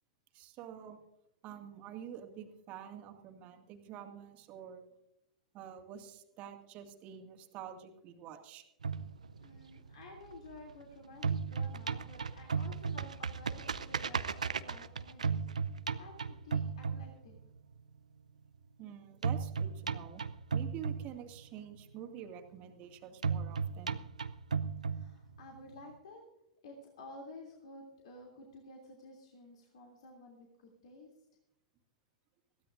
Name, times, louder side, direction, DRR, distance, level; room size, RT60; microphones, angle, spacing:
voice 1, 0.3-1.0 1.4-4.9 5.5-8.6 18.8-20.2 20.5-24.0, right 9 dB, 40° right, 5 dB, 2.2 m, -48 dB
sound 1, 8.8-10.8 11.1-17.6 19.2-21.6 23.2-25.6, right 5 dB, 80° right, 0.6 m, -35 dB
voice 2, 9.4-15.4 15.9-17.3 24.9-26.2 26.6-30.5 30.8-31.1, left 2 dB, 60° left, 0 dB, 3.0 m, -52 dB
21.5 x 16.0 x 2.6 m, 0.83 s
figure-of-eight pair, 100°, 4 cm